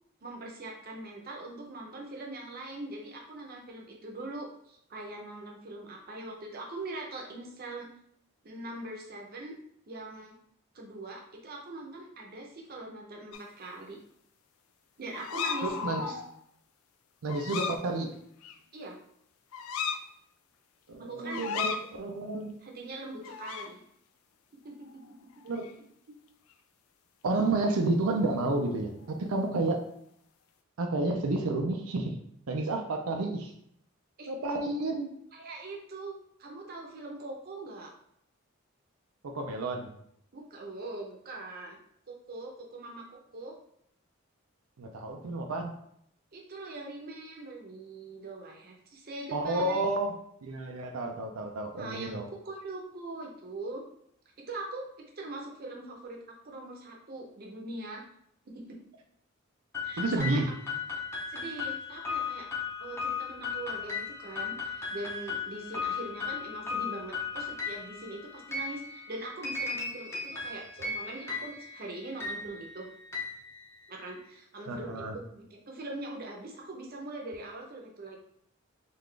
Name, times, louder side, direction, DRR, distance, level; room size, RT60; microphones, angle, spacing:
voice 1, 0.2-7.9 8.4-9.6 9.9-10.3 10.7-14.0 15.0-16.1 18.7-19.0 21.0-21.5 22.6-23.8 24.6-25.0 34.2-34.3 35.3-37.9 40.3-41.8 42.1-43.5 46.3-49.9 51.8-53.8 54.5-54.9 55.2-58.0 58.5-58.6 59.8-60.4 61.3-62.5 62.8-72.9 73.9-78.2, right 2 dB, 45° right, 0 dB, 0.7 m, -42 dB
sound 1, 13.3-13.4 15.1-16.3 17.3-17.8 18.4-18.6 19.5-20.0 21.3-21.8 23.2-23.7 24.9-25.1 25.4-25.7 29.0-29.7, left 6 dB, 80° left, 0.4 m, -35 dB
voice 2, 15.6-16.1 17.2-18.1 20.9-22.6 25.4-25.7 26.1-26.2 27.2-29.8 30.8-32.1 32.5-33.5 34.3-35.1 39.2-39.9 44.8-45.7 49.3-52.3 60.0-60.5 74.7-75.2, right 2 dB, 90° right, 3 dB, 0.5 m, -30 dB
sound 2, 59.7-74.2, left 5 dB, 10° left, 0.6 m, -37 dB
3.9 x 2.4 x 3.3 m, 0.71 s
head